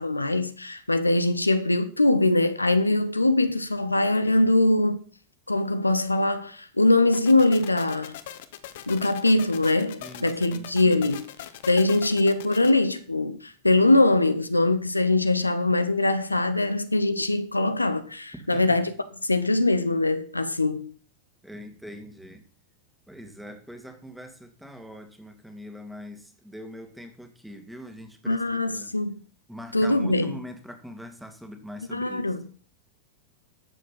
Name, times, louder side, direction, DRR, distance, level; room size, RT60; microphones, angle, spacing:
voice 1, 0.0-5.0 5.5-8.2 8.9-11.3 11.7-18.9 19.2-20.9 28.3-29.2 29.7-30.3 31.9-32.5, left 2 dB, 85° left, 0.9 m, -22 dB
sound 1, 7.1-12.7, left 12 dB, 55° left, 1.1 m, -40 dB
voice 2, 10.0-11.1 18.3-18.8 21.4-22.4 23.1-28.9 29.5-32.3, equal, ahead, 2.1 m, -43 dB
12.0 x 7.4 x 5.8 m
figure-of-eight pair, 90°, 0 cm